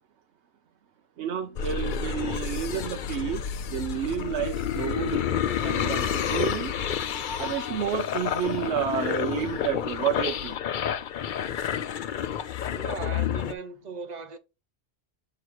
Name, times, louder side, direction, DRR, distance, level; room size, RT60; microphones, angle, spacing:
voice 1, 1.2-5.2 5.6-6.7 7.4-10.6, right 9 dB, 85° right, 1.0 m, -30 dB
sound 1, 1.6-13.5, left 8 dB, 55° left, 0.6 m, -29 dB
voice 2, 12.7-14.4, right 4 dB, 40° right, 1.0 m, -38 dB
7.1 x 3.0 x 4.6 m
omnidirectional pair, 1.1 m